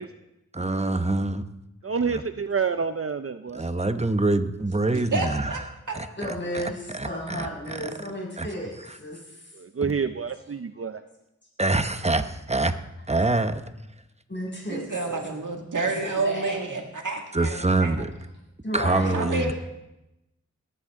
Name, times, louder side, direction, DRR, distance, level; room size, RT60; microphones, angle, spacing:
voice 1, 0.5-1.4 2.1-2.2 3.5-5.7 5.9-6.6 6.9-7.9 8.4-8.5 8.9-9.0 9.8-9.9 11.6-12.7 13.1-13.6 17.3-18.1 18.7-19.5, right 2 dB, 20° right, 9 dB, 0.9 m, -25 dB
voice 2, 1.8-3.6 9.5-11.0, right 5 dB, 50° right, 10 dB, 0.6 m, -28 dB
voice 3, 4.9-5.6 5.9-6.0 14.7-18.0 19.1-19.5, right 3 dB, 85° right, 2 dB, 2.0 m, -29 dB
voice 4, 6.2-9.4 14.3-15.3 15.8-16.5 18.6-19.2, equal, 35° left, -3 dB, 6.3 m, -33 dB
18.5 x 13.0 x 3.7 m, 0.91 s
wide cardioid pair, 60°, 30 cm